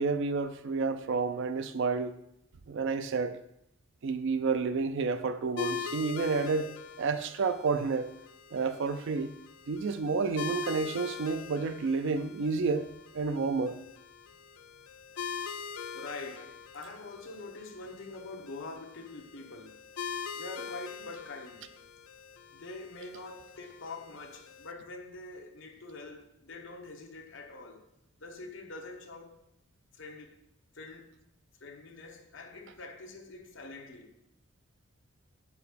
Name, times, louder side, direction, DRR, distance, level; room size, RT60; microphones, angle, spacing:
voice 1, 0.0-2.2 2.7-3.4 4.0-8.1 8.5-9.3 9.7-12.9 13.1-13.8, right 4 dB, 60° right, 0.4 m, -30 dB
sound 1, 5.6-24.7, left 6 dB, 85° left, 0.4 m, -43 dB
voice 2, 15.9-19.8 20.3-21.7 22.5-27.9 28.2-29.4 29.9-30.4 30.7-31.2 31.6-34.2, left 3 dB, 60° left, 0.9 m, -45 dB
4.8 x 4.5 x 5.0 m
head